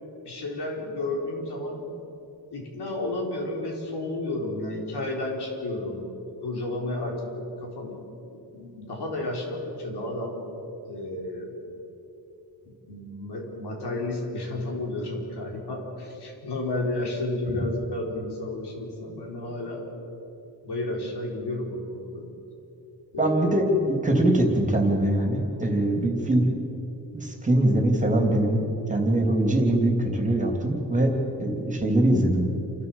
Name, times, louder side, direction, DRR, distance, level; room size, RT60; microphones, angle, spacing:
voice 1, 0.2-1.8 2.5-6.1 6.4-8.0 8.5-10.4 10.9-11.6 12.7-19.9 20.6-22.3 23.1-23.6, left 2 dB, 75° left, 0 dB, 4.5 m, -32 dB
voice 2, 23.2-26.5 27.1-31.1 31.4-32.5, right 1 dB, 20° right, 2 dB, 3.3 m, -22 dB
29.0 x 12.5 x 7.5 m, 2.9 s
wide cardioid pair, 125°, 40 cm